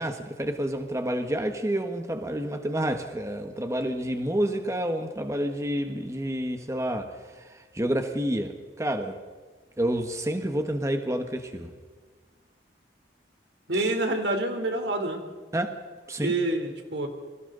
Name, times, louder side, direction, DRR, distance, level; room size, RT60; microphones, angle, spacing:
voice 1, 0.0-9.2 9.8-11.7 13.7-13.9 15.5-15.8 16.1-16.3, right 1 dB, 15° right, 6 dB, 1.4 m, -29 dB
voice 2, 13.7-15.2 16.2-17.1, right 2 dB, 80° right, 5 dB, 3.5 m, -27 dB
29.5 x 23.0 x 4.0 m, 1.4 s
head